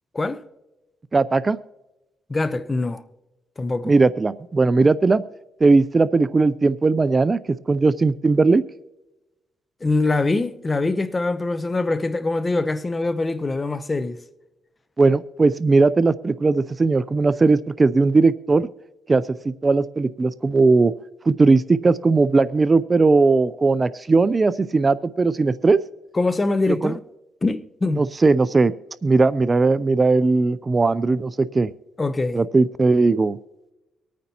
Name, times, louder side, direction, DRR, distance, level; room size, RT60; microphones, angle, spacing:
voice 1, 1.1-1.6 3.8-5.2 5.6-8.6 15.0-18.7 19.1-20.9 21.3-25.8 26.7-26.9 28.0-28.7 29.0-31.7 32.3-33.4, right 3 dB, 25° right, 0.4 m, -18 dB
voice 2, 2.3-3.1 3.6-3.9 9.8-14.2 26.1-27.0 27.4-28.0 32.0-32.4, left 3 dB, 25° left, 0.7 m, -23 dB
24.5 x 9.3 x 2.9 m
cardioid pair, 90°, 0 cm